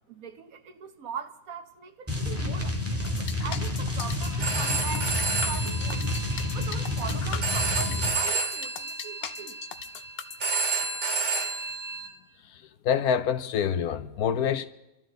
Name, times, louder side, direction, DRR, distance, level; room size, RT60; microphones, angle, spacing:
voice 1, 0.1-6.1 6.5-9.6, right 6 dB, 65° right, 1.4 m, -41 dB
sound 1, 2.1-8.2, left 2 dB, 10° right, 1.9 m, -29 dB
sound 2, 3.0-10.6, left 7 dB, 55° left, 0.7 m, -39 dB
Telephone, 4.2-12.1, right 4 dB, 50° right, 2.9 m, -31 dB
voice 2, 12.8-14.7, left 8 dB, 75° left, 1.3 m, -26 dB
29.5 x 12.5 x 3.9 m
omnidirectional pair, 1.6 m